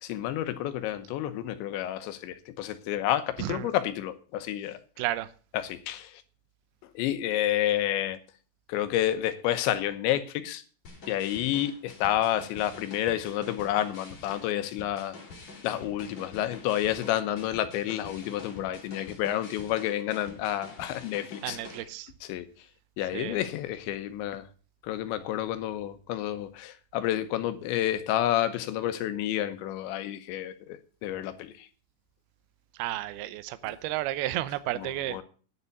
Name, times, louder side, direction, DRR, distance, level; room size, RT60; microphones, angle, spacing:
voice 1, 0.0-4.8 5.5-6.2 6.8-8.2 8.7-10.6 11.1-15.2 15.6-21.6 22.2-22.5 23.0-24.5 24.8-31.7 34.7-35.2, left 12 dB, 80° left, 3.3 m, -30 dB
voice 2, 3.4-3.7 5.0-5.3 21.4-22.1 23.1-23.4 32.7-35.2, right 15 dB, 75° right, 2.4 m, -32 dB
sound 1, 10.8-21.8, left 3 dB, 40° left, 4.0 m, -47 dB
11.0 x 6.8 x 8.5 m
omnidirectional pair, 5.2 m